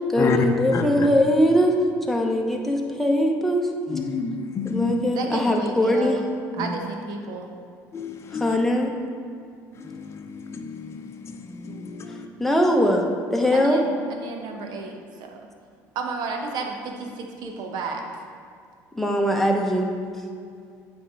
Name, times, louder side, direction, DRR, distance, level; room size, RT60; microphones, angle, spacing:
voice 1, 0.1-1.8 2.1-3.6 4.6-6.2 8.3-8.9 12.4-13.0 13.3-13.8 18.9-19.9, equal, 5° left, 0 dB, 1.0 m, -21 dB
voice 2, 3.9-5.0 7.9-8.6 9.9-12.3, left 4 dB, 35° left, 3 dB, 0.7 m, -29 dB
voice 3, 5.1-6.2 6.6-7.5 13.5-15.4 15.9-18.0, right 4 dB, 65° right, 3 dB, 1.0 m, -32 dB
8.0 x 3.4 x 4.8 m, 2.3 s
supercardioid pair, 85°, 8 cm